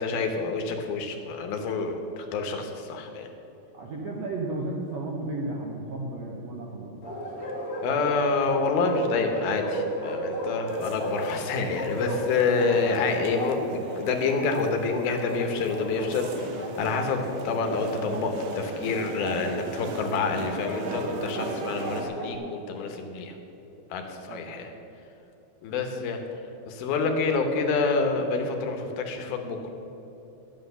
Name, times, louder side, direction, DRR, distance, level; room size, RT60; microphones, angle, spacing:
voice 1, 0.0-3.3 7.8-23.4 23.9-24.7 25.6-26.2 26.7-29.7, left 4 dB, 75° left, 4 dB, 2.8 m, -27 dB
voice 2, 3.7-7.0 17.1-17.2 24.3-24.6, right 2 dB, 70° right, -2 dB, 1.6 m, -34 dB
Bark, 7.0-22.4, equal, 30° left, 1.7 m, -35 dB
sound 1, 10.7-22.0, right 4 dB, 85° right, 3.0 m, -40 dB
11.5 x 8.9 x 6.7 m, 3.0 s
omnidirectional pair, 4.5 m